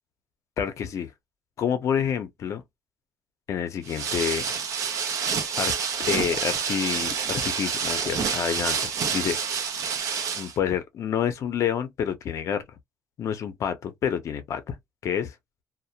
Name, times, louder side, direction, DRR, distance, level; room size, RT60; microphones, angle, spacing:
voice 1, 0.6-1.1 1.6-2.6 3.5-4.5 5.6-5.7 6.1-9.4 10.3-12.6 13.2-14.8 15.0-15.3, left 8 dB, 70° left, 0.6 m, -28 dB
sound 1, 3.8-10.5, right 6 dB, 75° right, 0.6 m, -28 dB
2.2 x 2.0 x 2.8 m
cardioid pair, 85°, 6 cm